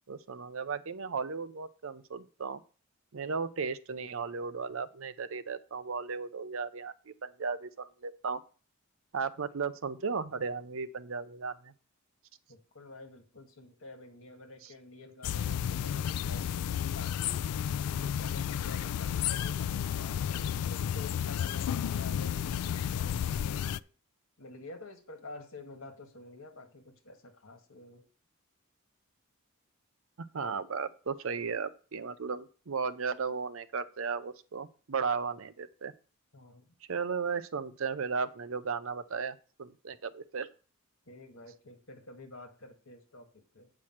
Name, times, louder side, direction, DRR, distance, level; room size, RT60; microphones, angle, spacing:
voice 1, 0.1-2.6 3.1-8.4 9.1-11.7 30.2-35.9 36.9-40.5, right 5 dB, 65° right, 13 dB, 0.6 m, -35 dB
voice 2, 12.5-17.5 17.9-23.9 24.4-28.1 36.3-36.7 41.1-43.7, left 2 dB, 65° left, 4 dB, 1.8 m, -49 dB
sound 1, 15.2-23.8, left 9 dB, 90° left, 0.3 m, -32 dB
8.5 x 4.7 x 5.9 m, 0.39 s
head